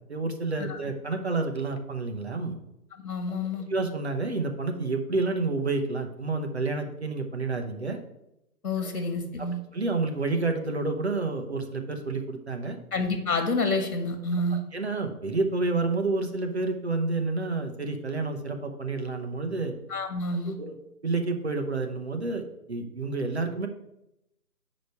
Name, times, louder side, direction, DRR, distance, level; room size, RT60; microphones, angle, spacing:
voice 1, 0.1-2.6 3.7-8.0 8.8-8.9 9.4-12.8 14.5-19.7 20.5-20.8 21.0-23.7, right 3 dB, 45° right, 5 dB, 0.8 m, -29 dB
voice 2, 3.0-3.7 8.6-9.6 12.9-14.6 19.9-20.6, left 2 dB, 65° left, 7 dB, 1.7 m, -28 dB
8.2 x 5.0 x 4.6 m, 0.86 s
hypercardioid pair, 175°, 47 cm